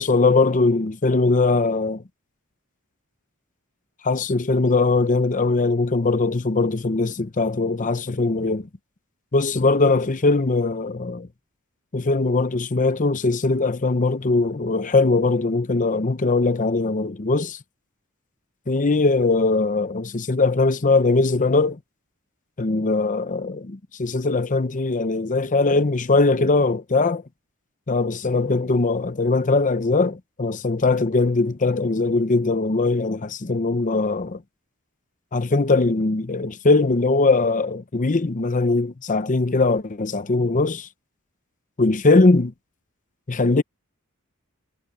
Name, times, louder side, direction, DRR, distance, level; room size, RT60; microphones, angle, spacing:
voice 1, 0.0-2.0 4.0-8.7 9.3-11.3 11.9-17.6 18.7-21.8 22.6-27.2 27.9-34.4 35.3-40.9 41.8-42.5 43.3-43.6, left 3 dB, 35° left, 0.7 m, -21 dB
head